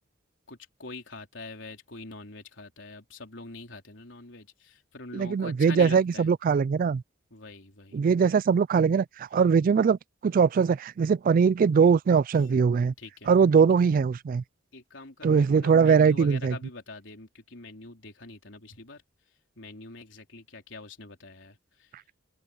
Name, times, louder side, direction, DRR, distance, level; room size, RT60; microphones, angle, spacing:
voice 1, 0.5-6.3 7.3-8.0 9.4-9.5 13.0-13.3 14.7-19.0 19.6-21.9, left 3 dB, 75° left, 3.9 m, -44 dB
voice 2, 5.1-7.0 7.9-12.9 13.3-14.4 15.2-16.6, right 6 dB, 50° right, 0.3 m, -21 dB
open air
head